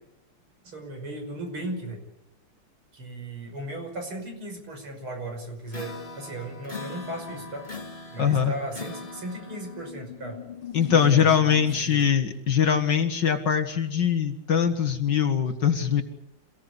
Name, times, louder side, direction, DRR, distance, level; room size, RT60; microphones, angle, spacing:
voice 1, 0.6-2.0 2.9-7.8 8.1-10.4 11.0-12.0, right 1 dB, 70° right, 4 dB, 6.4 m, -36 dB
sound 1, 5.7-9.9, left 4 dB, 25° left, 2.3 m, -40 dB
voice 2, 8.2-8.5 10.7-16.0, left 8 dB, 55° left, 7 dB, 2.3 m, -22 dB
sound 2, 9.5-12.4, left 10 dB, 70° left, 2.8 m, -42 dB
28.0 x 17.5 x 8.3 m, 0.86 s
omnidirectional pair, 2.4 m